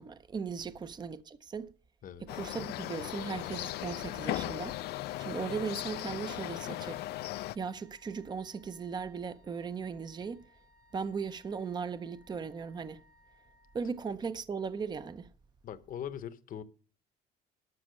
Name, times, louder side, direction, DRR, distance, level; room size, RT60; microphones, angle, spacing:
voice 1, 0.0-1.7 2.2-4.8 5.2-7.0 7.5-10.4 10.9-13.0 13.7-15.3, right 5 dB, 25° right, 0.6 m, -38 dB
sound 1, 2.3-7.6, left 15 dB, 75° left, 0.4 m, -37 dB
Wind instrument woodwind instrument, 3.5-14.3, left 1 dB, 55° right, 2.1 m, -64 dB
voice 2, 15.6-16.6, left 9 dB, 55° left, 0.9 m, -41 dB
12.5 x 6.0 x 6.4 m
cardioid pair, 110°, 17 cm